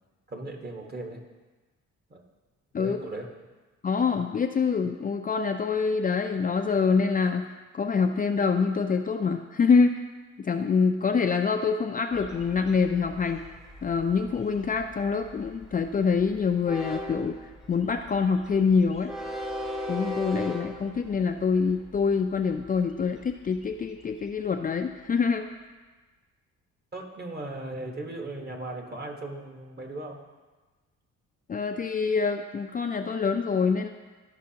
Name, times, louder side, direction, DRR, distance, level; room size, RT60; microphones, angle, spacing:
voice 1, 0.3-1.2 2.1-2.2 2.8-3.3 26.9-30.2, right 2 dB, 30° right, 2 dB, 1.4 m, -37 dB
voice 2, 3.8-10.0 10.4-13.4 13.8-17.4 17.7-19.1 19.9-25.5 31.5-33.9, left 5 dB, 30° left, 4 dB, 0.4 m, -25 dB
Train, 12.1-25.1, left 1 dB, ahead, 0.8 m, -40 dB
13.5 x 5.4 x 2.9 m, 1.3 s
cardioid pair, 90°, 30 cm